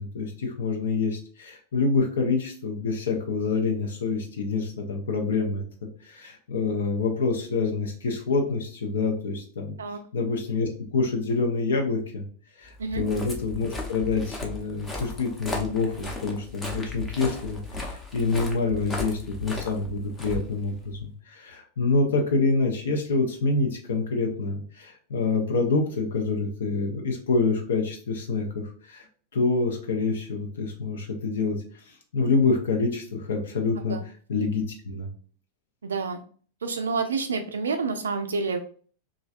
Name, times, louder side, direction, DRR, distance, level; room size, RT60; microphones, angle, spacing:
voice 1, 0.0-5.6 6.0-9.8 10.1-12.2 12.6-29.1 29.3-34.0 34.3-35.1, left 4 dB, 65° left, 2 dB, 0.5 m, -27 dB
Walk footsteps, 12.8-21.0, left 2 dB, 15° left, 0.7 m, -36 dB
voice 2, 35.8-36.2 36.6-38.6, right 4 dB, 70° right, 6 dB, 0.3 m, -28 dB
3.1 x 2.4 x 2.4 m, 0.43 s
figure-of-eight pair, 90°, 0 cm